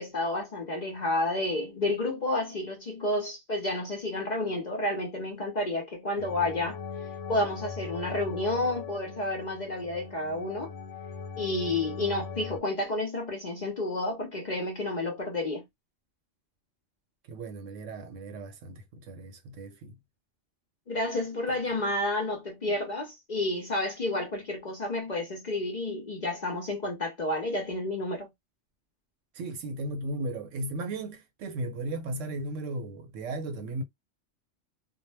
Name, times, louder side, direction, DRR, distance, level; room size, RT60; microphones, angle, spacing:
voice 1, 0.0-6.8 7.3-10.7 11.4-15.6 20.9-28.3, left 2 dB, 50° left, 0.6 m, -30 dB
sound 1, 6.2-12.6, left 5 dB, 75° left, 0.9 m, -40 dB
voice 2, 17.3-19.9 21.5-21.6 29.3-33.8, right 2 dB, 75° right, 1.0 m, -36 dB
2.2 x 2.1 x 3.2 m
omnidirectional pair, 1.3 m